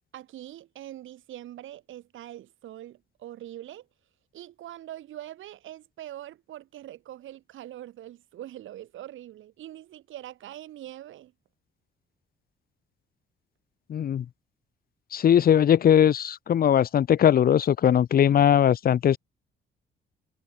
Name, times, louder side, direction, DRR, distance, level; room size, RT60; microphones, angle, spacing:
voice 1, 0.1-3.9 4.3-11.3, right 13 dB, 80° right, 3.8 m, -43 dB
voice 2, 13.9-14.3 15.1-19.2, left 9 dB, 50° left, 0.7 m, -20 dB
cardioid pair, 90°, 20 cm